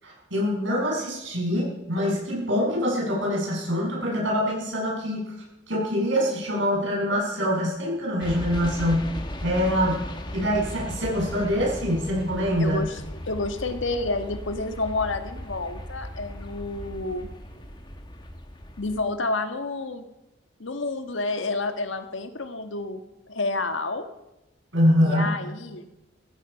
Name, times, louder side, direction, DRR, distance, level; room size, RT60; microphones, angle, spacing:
voice 1, 0.0-5.4 5.7-9.1 9.4-10.0 10.3-12.8 24.7-25.3, equal, 80° right, -2 dB, 7.5 m, -24 dB
sound 1, 8.2-19.0, left 1 dB, 25° left, 1.5 m, -37 dB
voice 2, 12.6-13.0 13.3-17.3 18.8-20.0 20.6-23.0 23.3-24.1 25.0-25.9, left 3 dB, 80° left, 8 dB, 1.5 m, -29 dB
16.0 x 15.5 x 5.7 m, 0.95 s
head